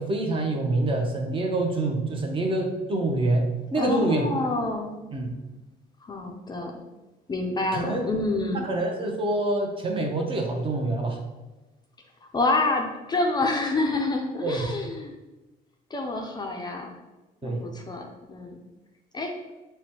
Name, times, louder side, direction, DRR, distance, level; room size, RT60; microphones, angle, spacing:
voice 1, 0.0-4.3 5.1-5.3 7.7-8.1 8.7-11.2 14.4-14.7 17.4-17.6, right 2 dB, 30° right, 1 dB, 0.7 m, -26 dB
voice 2, 3.8-4.9 6.0-6.8 7.3-8.7 12.3-15.1 15.9-16.9 17.4-18.6 19.1-19.4, left 2 dB, 25° left, 2 dB, 0.5 m, -27 dB
6.0 x 2.2 x 2.8 m, 1.1 s
cardioid pair, 110°, 17 cm